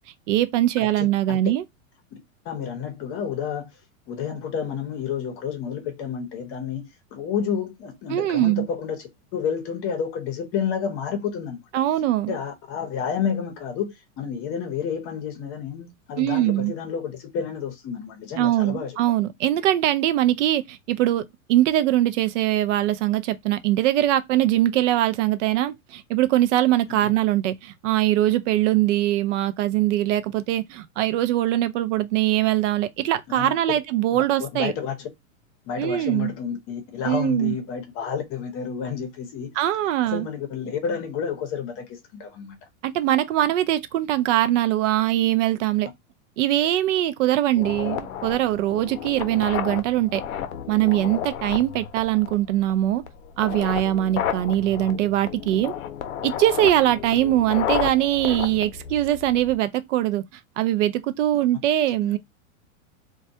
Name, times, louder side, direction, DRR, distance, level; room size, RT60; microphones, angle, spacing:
voice 1, 0.3-1.6 8.1-8.7 11.7-12.4 16.2-16.7 18.4-21.2 21.5-34.7 35.8-36.3 37.1-37.5 39.6-40.3 42.8-45.9 46.4-50.2 50.7-53.0 53.4-55.7 56.2-60.2 60.6-62.2, right 13 dB, 60° right, 0.5 m, -22 dB
voice 2, 0.8-1.4 2.1-2.2 2.4-3.8 4.1-11.6 12.3-19.0 26.9-27.1 33.3-33.8 34.1-35.1 35.6-39.6 40.0-42.6 62.0-62.1, left 7 dB, 30° left, 0.7 m, -30 dB
sound 1, 47.6-59.6, left 9 dB, 80° left, 0.6 m, -32 dB
2.2 x 2.1 x 2.6 m
supercardioid pair, 135°, 41 cm